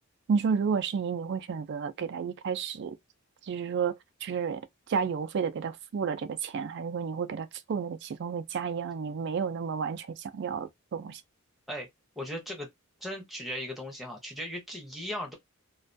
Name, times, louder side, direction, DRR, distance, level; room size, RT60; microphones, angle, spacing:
voice 1, 0.3-3.0 3.5-4.6 4.9-11.2, right 6 dB, 50° right, 0.3 m, -31 dB
voice 2, 12.2-12.7 13.0-15.3, equal, ahead, 0.7 m, -37 dB
2.3 x 2.2 x 2.5 m
head